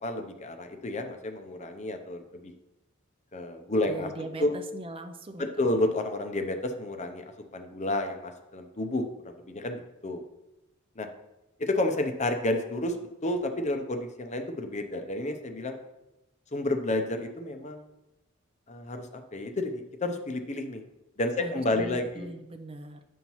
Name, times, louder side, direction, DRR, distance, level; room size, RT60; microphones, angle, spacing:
voice 1, 0.0-2.5 3.3-4.1 4.4-4.5 5.4-7.2 7.5-10.2 11.0-11.1 11.6-13.0 13.2-15.8 16.5-17.9 18.7-20.8 21.2-22.3, left 1 dB, 35° left, 6 dB, 0.6 m, -30 dB
voice 2, 3.9-5.5 21.4-23.0, right 2 dB, 25° right, 6 dB, 0.4 m, -41 dB
9.1 x 5.5 x 3.0 m, 0.95 s
head